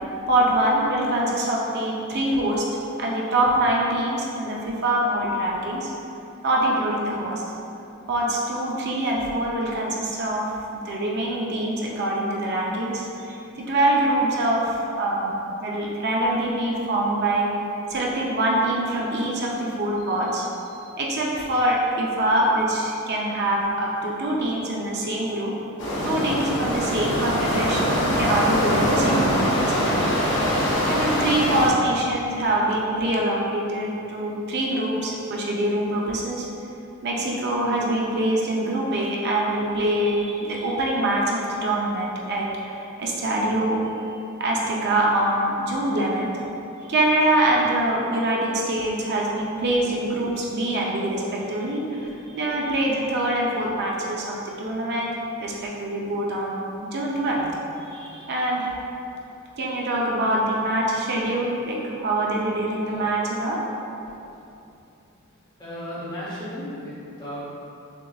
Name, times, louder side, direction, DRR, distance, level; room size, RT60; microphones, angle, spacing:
voice 1, 0.3-2.7 3.0-5.9 6.4-7.4 8.1-10.5 10.9-15.3 15.6-17.5 17.9-20.5 21.0-25.5 26.0-30.1 30.9-36.5 37.0-46.3 46.9-55.1 55.4-57.5 57.9-58.7 59.6-63.6, right 1 dB, 50° right, -3 dB, 0.5 m, -24 dB
sound 1, 25.8-31.7, equal, 55° left, 0.9 m, -23 dB
voice 2, 65.6-67.5, equal, 20° left, -8 dB, 0.9 m, -35 dB
6.3 x 2.4 x 2.3 m, 2.7 s
head